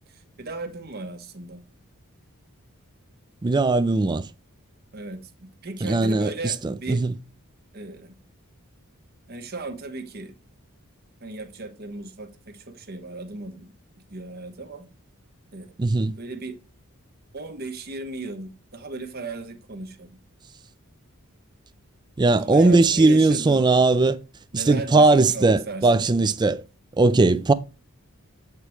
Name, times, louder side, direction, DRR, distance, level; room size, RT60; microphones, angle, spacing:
voice 1, 0.1-1.6 4.9-7.0 7.7-8.1 9.3-10.3 11.2-13.7 14.1-14.9 15.5-15.7 16.2-16.6 17.3-20.1 22.4-23.6 24.5-26.0, right 2 dB, 45° right, 1.0 m, -36 dB
voice 2, 3.4-4.3 5.8-7.1 15.8-16.1 22.2-24.2 24.5-26.6 27.0-27.5, right 3 dB, 20° right, 0.3 m, -19 dB
8.1 x 3.0 x 4.8 m
head